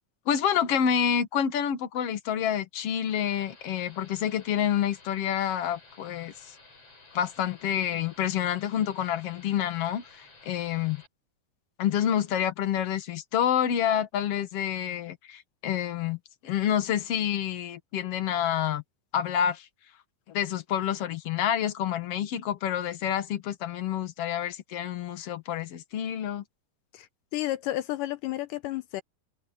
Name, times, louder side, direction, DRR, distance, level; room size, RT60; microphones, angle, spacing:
voice 1, 0.3-6.3 7.1-11.0 11.8-18.8 19.1-19.7 20.3-26.4, left 9 dB, 55° left, 1.9 m, -28 dB
sound 1, 3.1-11.1, left 3 dB, 40° left, 7.3 m, -54 dB
voice 2, 26.9-29.0, left 15 dB, 80° left, 1.9 m, -32 dB
omnidirectional pair, 4.3 m